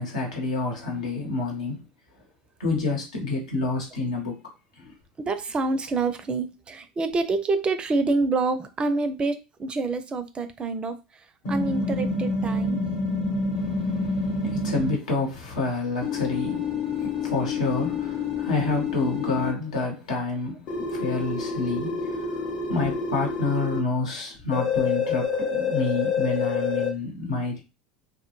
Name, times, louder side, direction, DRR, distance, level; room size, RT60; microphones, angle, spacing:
voice 1, 0.0-1.9 2.6-4.4 4.8-4.9 13.5-22.3 22.7-27.6, left 3 dB, 85° left, 1.0 m, -29 dB
voice 2, 5.3-11.0 11.5-12.8, right 3 dB, 25° right, 0.4 m, -27 dB
sound 1, 11.4-14.9 16.0-19.5 20.7-23.8 24.5-26.9, left 4 dB, 60° left, 1.0 m, -27 dB
2.1 x 2.1 x 3.0 m
hypercardioid pair, 85°, 4 cm